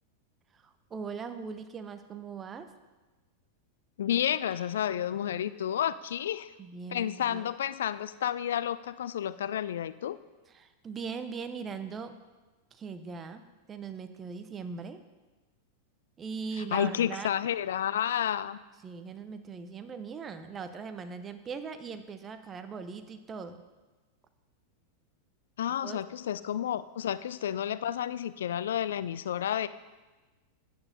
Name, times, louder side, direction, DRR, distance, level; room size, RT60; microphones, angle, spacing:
voice 1, 0.6-2.7 6.6-7.5 10.5-12.1 12.7-13.4 13.7-15.0 16.2-17.3 18.8-23.6 25.8-26.0, right 5 dB, 20° right, 9 dB, 0.7 m, -40 dB
voice 2, 4.0-6.5 6.9-10.2 16.6-18.6 25.6-29.7, left 10 dB, 60° left, 16 dB, 0.3 m, -31 dB
9.4 x 8.8 x 4.0 m, 1.2 s
figure-of-eight pair, 90°, 0 cm